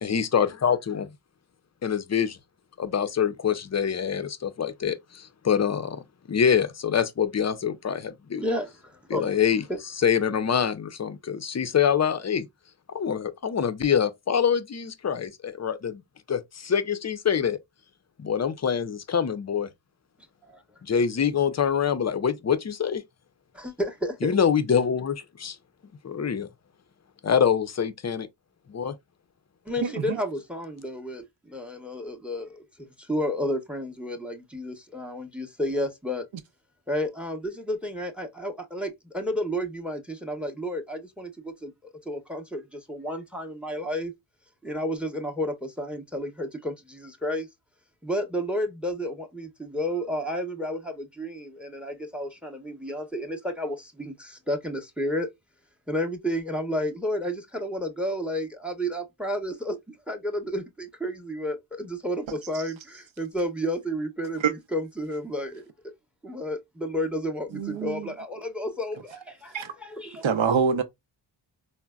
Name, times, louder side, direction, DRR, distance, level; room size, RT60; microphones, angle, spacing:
voice 1, 0.0-1.1 1.8-2.4 2.8-6.0 6.3-8.4 9.1-9.6 10.0-12.5 12.9-16.0 16.3-17.6 18.2-19.7 20.8-23.0 24.2-25.6 26.0-26.5 27.2-28.3 28.7-29.0, left 7 dB, 35° left, 0.5 m, -25 dB
voice 2, 8.4-9.3 9.7-9.8 20.4-20.6 23.5-24.3 29.7-36.3 36.9-41.7 42.1-44.1 44.6-47.5 48.0-55.3 55.9-65.6 66.2-70.2, equal, ahead, 0.8 m, -31 dB
voice 3, 29.8-30.2 62.5-62.6 64.4-64.5 67.5-68.1 69.5-69.7 70.2-70.8, right 6 dB, 65° right, 0.7 m, -25 dB
3.9 x 2.1 x 2.3 m
cardioid pair, 40°, 50 cm